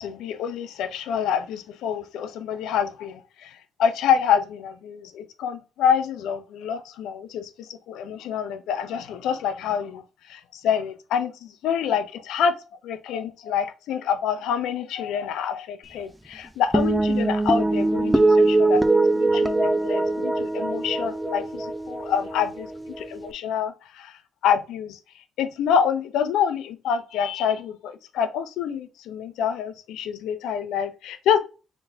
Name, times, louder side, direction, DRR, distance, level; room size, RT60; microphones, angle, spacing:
voice 1, 0.0-12.5 12.8-22.7 23.0-25.0 25.4-31.4, left 7 dB, 85° left, 0.5 m, -27 dB
sound 1, 16.7-23.3, right 2 dB, 10° right, 0.5 m, -22 dB
3.8 x 3.4 x 2.5 m
cardioid pair, 90°, 0 cm